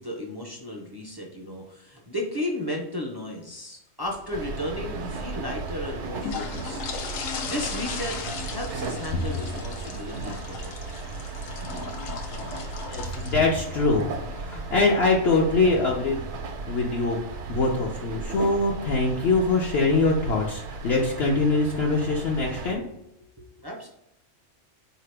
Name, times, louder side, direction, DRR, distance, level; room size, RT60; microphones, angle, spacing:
voice 1, 0.0-6.8 7.5-10.8 23.4-23.9, left 1 dB, 30° right, -1 dB, 0.4 m, -34 dB
sound 1, 4.0-16.4, left 5 dB, 85° left, 1.0 m, -39 dB
sound 2, 4.3-22.7, right 3 dB, 70° right, 0.9 m, -35 dB
voice 2, 12.9-16.2 16.7-17.2 17.5-22.8, left 3 dB, 60° left, -2 dB, 0.8 m, -23 dB
4.1 x 2.8 x 3.3 m, 0.84 s
omnidirectional pair, 1.3 m